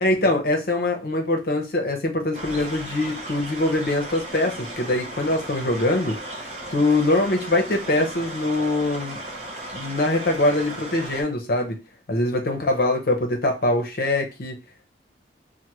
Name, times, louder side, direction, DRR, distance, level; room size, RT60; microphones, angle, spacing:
voice 1, 0.0-6.2 6.7-9.2 9.7-11.8 12.1-14.6, left 2 dB, 55° left, 3 dB, 0.7 m, -23 dB
sound 1, 2.3-11.2, right 1 dB, 35° right, 0.7 m, -36 dB
3.3 x 2.1 x 2.9 m, 0.28 s
head